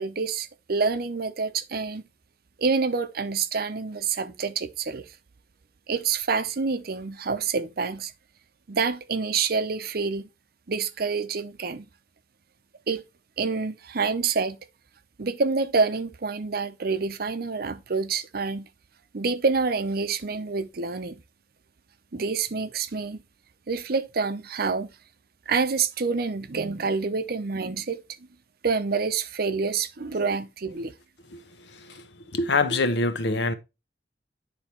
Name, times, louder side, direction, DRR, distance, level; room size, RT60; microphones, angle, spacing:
voice 1, 0.0-2.0 2.6-5.0 5.9-8.1 8.7-10.3 10.7-11.9 12.9-13.0 13.4-14.6 15.2-18.7 19.1-21.2 22.1-23.2 23.7-24.9 25.5-28.0 28.6-30.9, right 4 dB, 60° right, 0.7 m, -27 dB
voice 2, 31.3-33.5, left 3 dB, 70° left, 0.9 m, -26 dB
9.8 x 3.5 x 4.3 m
head